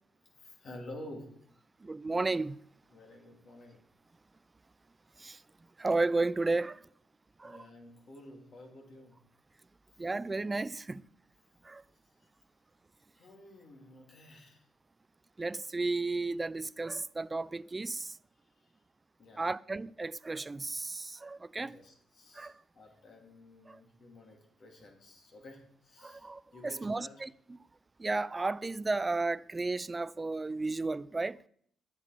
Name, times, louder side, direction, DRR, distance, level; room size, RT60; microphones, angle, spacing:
voice 1, 0.2-1.4 2.9-3.8 7.4-9.2 9.9-10.0 12.2-12.4 13.1-14.6 18.3-18.7 19.2-19.5 21.6-27.3, left 1 dB, 55° left, 3.0 m, -51 dB
voice 2, 1.8-2.6 5.2-5.4 5.8-6.8 7.4-7.6 10.0-11.0 11.6-11.8 15.4-18.2 19.4-21.8 22.3-22.5 23.7-23.8 26.0-27.3 28.0-31.4, right 3 dB, 20° right, 0.4 m, -33 dB
12.5 x 8.4 x 5.0 m
cardioid pair, 90°, 0 cm